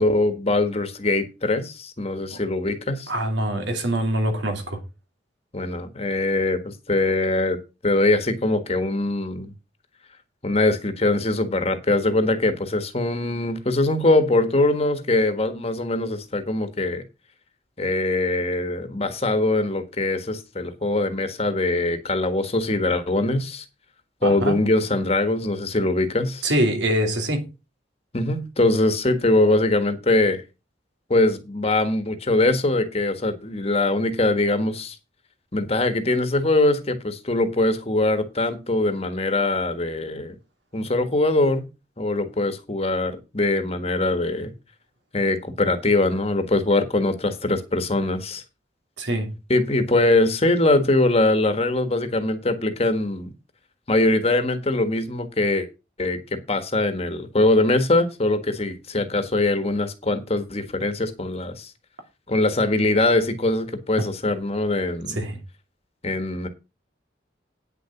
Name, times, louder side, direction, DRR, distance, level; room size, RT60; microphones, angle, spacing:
voice 1, 0.0-3.1 5.5-7.6 7.8-9.5 10.4-17.0 17.8-23.6 24.2-26.4 28.1-30.4 31.1-35.0 35.5-40.4 40.7-41.7 42.0-44.5 45.1-48.4 49.5-53.3 53.9-55.7 56.0-61.7 62.3-65.2 66.0-66.5, left 2 dB, 35° left, 1.5 m, -22 dB
voice 2, 3.1-4.8 24.2-24.6 26.4-27.5 49.0-49.4 65.1-65.4, right 1 dB, 75° right, 2.8 m, -24 dB
9.6 x 6.9 x 5.8 m
head